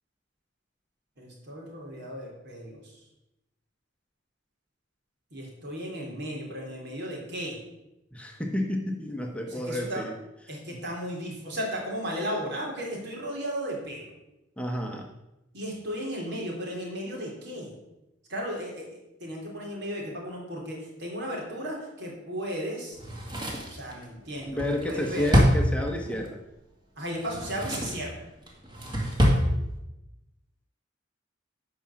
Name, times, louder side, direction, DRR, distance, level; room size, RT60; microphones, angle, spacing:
voice 1, 1.2-3.0 5.3-7.6 9.5-10.0 10.5-14.1 15.5-17.7 18.3-23.0 23.7-25.3 27.0-28.2, equal, 60° right, -2 dB, 3.6 m, -35 dB
voice 2, 8.1-10.2 10.7-10.8 14.6-15.1 24.5-26.4, left 1 dB, 5° left, 2 dB, 1.0 m, -31 dB
Drawer open or close, 23.0-26.3 27.1-28.1 28.5-29.5 29.8-29.9, equal, 25° right, 2.1 m, -26 dB
11.5 x 4.9 x 7.5 m, 0.92 s
head